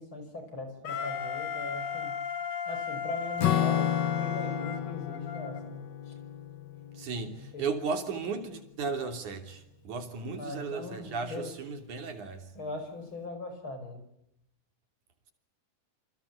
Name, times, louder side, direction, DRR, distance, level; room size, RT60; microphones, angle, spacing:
voice 1, 0.0-2.2 2.7-6.1 7.0-7.8 10.3-11.5 12.5-14.0, left 2 dB, 35° left, 6.2 m, -41 dB
Wind instrument woodwind instrument, 0.8-5.6, left 6 dB, 90° left, 3.7 m, -35 dB
Acoustic guitar / Strum, 3.4-8.2, left 10 dB, 70° left, 1.0 m, -32 dB
voice 2, 7.0-12.5, right 4 dB, 65° right, 4.5 m, -35 dB
29.0 x 25.0 x 8.3 m
omnidirectional pair, 3.8 m